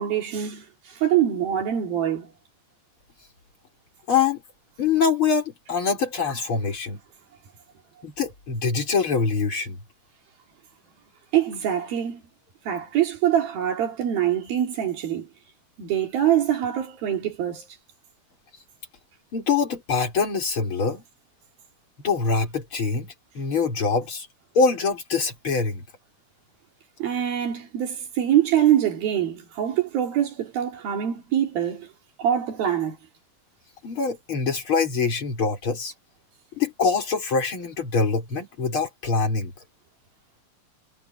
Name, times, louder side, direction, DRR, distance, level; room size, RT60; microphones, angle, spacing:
voice 1, 0.0-2.3 11.3-12.2 12.7-15.3 15.8-17.7 27.0-31.9 32.2-33.0, right 10 dB, 75° right, 4.4 m, -24 dB
voice 2, 4.1-4.4 4.8-7.0 8.0-9.8 19.3-21.0 22.0-23.1 23.3-24.3 24.6-25.8 33.8-35.9 36.6-39.5, left 5 dB, 35° left, 5.6 m, -24 dB
omnidirectional pair, 4.3 m